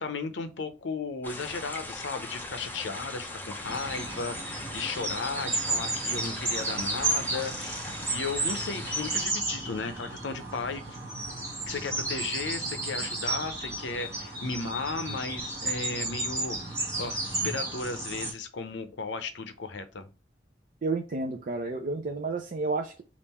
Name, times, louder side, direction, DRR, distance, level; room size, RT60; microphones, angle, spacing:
voice 1, 0.0-11.0 11.7-20.1, left 4 dB, 70° left, 0.6 m, -35 dB
sound 1, 1.2-9.3, left 1 dB, 10° left, 0.6 m, -40 dB
sound 2, 3.6-18.3, right 2 dB, 15° right, 1.4 m, -33 dB
voice 2, 20.8-23.0, right 3 dB, 45° right, 0.5 m, -31 dB
3.6 x 2.5 x 4.2 m
head